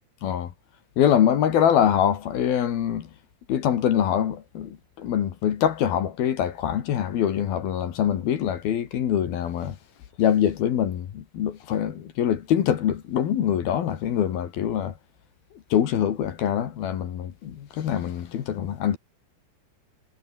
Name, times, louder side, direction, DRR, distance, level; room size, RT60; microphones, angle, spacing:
voice 1, 1.0-3.1 3.5-9.8 10.2-14.9 15.7-19.0, left 9 dB, 60° left, 3.4 m, -24 dB
omnidirectional pair, 5.4 m